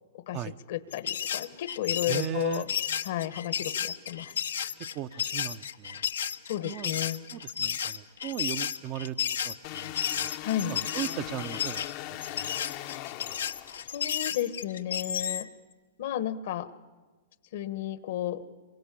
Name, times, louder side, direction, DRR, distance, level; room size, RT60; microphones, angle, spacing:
voice 1, 0.7-2.7 3.0-4.4 6.5-7.2 10.4-10.8 13.9-15.5 16.0-16.7 17.5-18.4, left 12 dB, 65° left, 14 dB, 1.3 m, -32 dB
sound 1, 0.9-15.5, left 8 dB, 85° left, 1.0 m, -33 dB
voice 2, 2.1-2.7 4.9-6.0 6.6-6.9 7.3-9.2 9.4-10.3 10.7-11.9 12.3-12.6 12.9-13.0, right 11 dB, 40° right, 11 dB, 0.8 m, -37 dB
sound 2, 9.6-14.2, left 16 dB, 50° left, 0.8 m, -40 dB
26.5 x 23.5 x 8.4 m, 1.3 s
hypercardioid pair, 125°, 0 cm